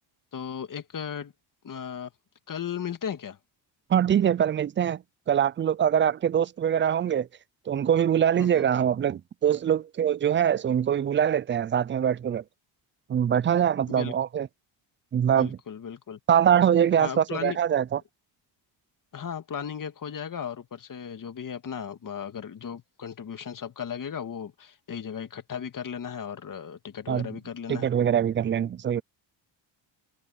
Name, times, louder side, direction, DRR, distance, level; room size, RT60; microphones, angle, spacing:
voice 1, 0.3-1.3 1.6-2.1 2.5-3.4 8.4-8.7 13.9-14.1 15.4-16.2 17.0-17.6 19.1-27.9, left 8 dB, 40° left, 2.2 m, -36 dB
voice 2, 3.9-5.0 5.3-7.3 7.7-12.4 13.1-14.5 15.1-15.6 16.3-18.0 27.1-27.3 27.7-29.0, right 9 dB, 25° right, 0.4 m, -23 dB
cardioid pair, 100°, 48 cm